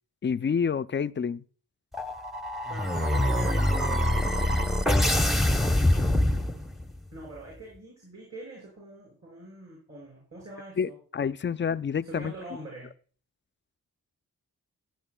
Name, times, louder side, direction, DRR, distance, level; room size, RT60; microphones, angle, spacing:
voice 1, 0.2-1.4 10.8-12.3, left 6 dB, 30° left, 0.4 m, -28 dB
sound 1, 1.9-7.0, left 1 dB, ahead, 0.8 m, -24 dB
voice 2, 2.7-4.0 7.1-11.0 12.0-12.9, right 2 dB, 45° right, 5.7 m, -43 dB
15.5 x 9.1 x 2.3 m
cardioid pair, 45°, 38 cm